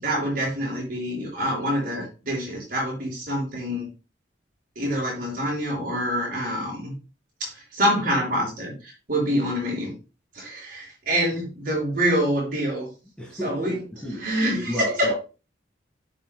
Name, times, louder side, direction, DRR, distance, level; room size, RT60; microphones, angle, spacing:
voice 1, 0.0-3.9 4.8-6.9 7.4-9.9 10.3-12.9 13.3-13.8 14.2-15.2, equal, 50° right, 5.7 m, -26 dB
voice 2, 13.2-14.3 14.6-15.1, equal, 5° left, 1.9 m, -33 dB
16.0 x 5.8 x 2.2 m
head